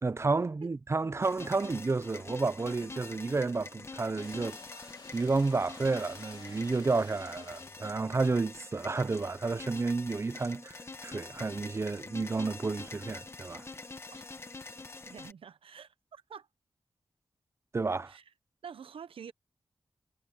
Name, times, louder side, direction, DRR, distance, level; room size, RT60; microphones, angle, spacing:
voice 1, 0.0-4.6 5.1-13.6 17.7-18.1, right 3 dB, 30° right, 0.5 m, -31 dB
sound 1, 1.2-15.3, left 3 dB, 30° left, 1.6 m, -46 dB
sound 2, 4.2-8.2, left 4 dB, 50° left, 1.8 m, -53 dB
voice 2, 15.0-16.5 18.1-18.2 18.6-19.3, right 7 dB, 90° right, 0.9 m, -47 dB
wide cardioid pair, 120°, 9 cm